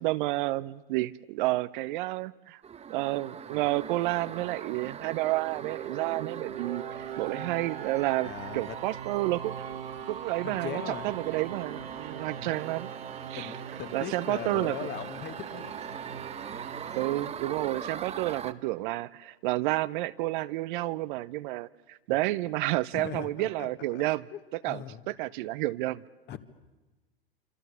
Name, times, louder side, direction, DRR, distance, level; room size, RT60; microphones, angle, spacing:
voice 1, 0.0-2.6 2.9-9.7 10.1-12.9 13.3-13.5 13.9-14.9 17.0-24.2 24.5-26.0, right 18 dB, 55° right, 0.8 m, -30 dB
sound 1, 2.6-18.5, right 7 dB, 20° right, 1.1 m, -42 dB
sound 2, 5.1-18.1, right 8 dB, 85° right, 1.2 m, -42 dB
voice 2, 8.2-8.8 10.4-11.1 12.4-12.6 13.4-15.8 22.9-24.0 24.3-24.4 24.7-25.0 26.3-26.4, left 10 dB, 35° left, 1.9 m, -40 dB
26.5 x 26.5 x 7.0 m
hypercardioid pair, 100°, 29 cm